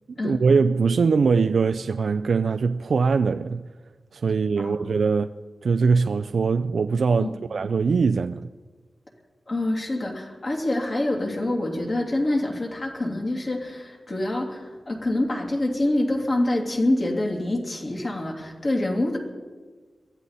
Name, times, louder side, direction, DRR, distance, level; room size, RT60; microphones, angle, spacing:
voice 1, 0.2-3.6 4.1-5.3 5.6-8.5, right 5 dB, 75° right, 0.4 m, -22 dB
voice 2, 4.6-4.9 7.2-7.3 9.5-19.2, left 1 dB, 45° left, 2.9 m, -26 dB
22.5 x 14.5 x 4.1 m
wide cardioid pair, 140°, 0 cm